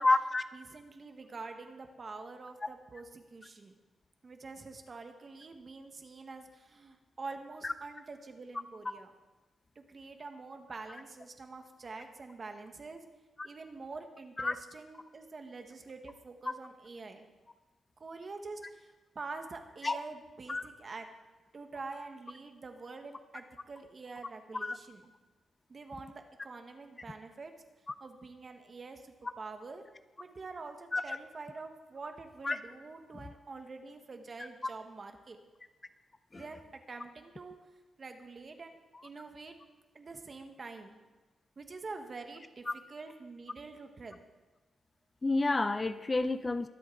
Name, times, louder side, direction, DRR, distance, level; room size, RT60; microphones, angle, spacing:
voice 1, 0.0-0.4 7.6-7.7 13.4-13.5 14.4-14.5 19.8-20.0 20.5-20.6 24.5-24.8 30.9-31.2 32.4-32.6 36.3-36.4 42.7-42.8 45.2-46.7, left 2 dB, 25° left, 12 dB, 0.5 m, -29 dB
voice 2, 0.5-3.7 4.2-9.1 9.7-13.0 13.4-17.3 18.0-21.1 21.5-25.1 25.7-27.5 28.0-29.8 30.2-35.4 36.4-37.6 38.0-39.6 39.9-41.0 41.6-44.2, right 3 dB, 40° right, 5 dB, 1.4 m, -46 dB
22.5 x 8.2 x 3.9 m, 1.2 s
cardioid pair, 100°, 0 cm